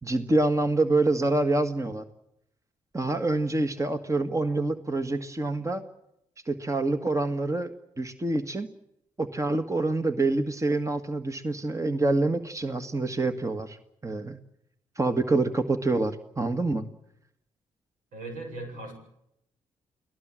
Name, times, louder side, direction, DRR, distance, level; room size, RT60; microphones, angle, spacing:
voice 1, 0.0-2.0 2.9-5.9 6.5-8.7 9.2-13.8 14.0-14.4 15.0-16.9, right 2 dB, 25° right, 9 dB, 1.9 m, -26 dB
voice 2, 18.1-18.9, right 2 dB, 80° right, 4 dB, 7.8 m, -38 dB
29.5 x 19.0 x 7.7 m, 0.80 s
supercardioid pair, 50°, 14 cm